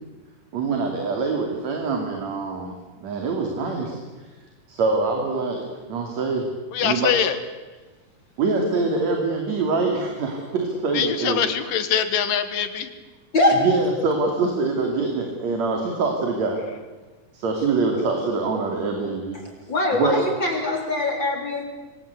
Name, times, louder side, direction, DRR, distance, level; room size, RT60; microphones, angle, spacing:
voice 1, 0.5-2.7 3.0-4.0 4.7-6.5 6.8-7.1 8.4-11.4 13.6-16.6 17.3-19.4 20.0-20.2, right 3 dB, 55° right, 2 dB, 3.8 m, -24 dB
voice 2, 6.7-7.4 10.9-12.9, left 8 dB, 75° left, 10 dB, 3.1 m, -23 dB
voice 3, 13.3-13.7 19.3-21.6, left 2 dB, 35° left, 2 dB, 4.0 m, -22 dB
27.0 x 23.0 x 8.3 m, 1.3 s
omnidirectional pair, 3.9 m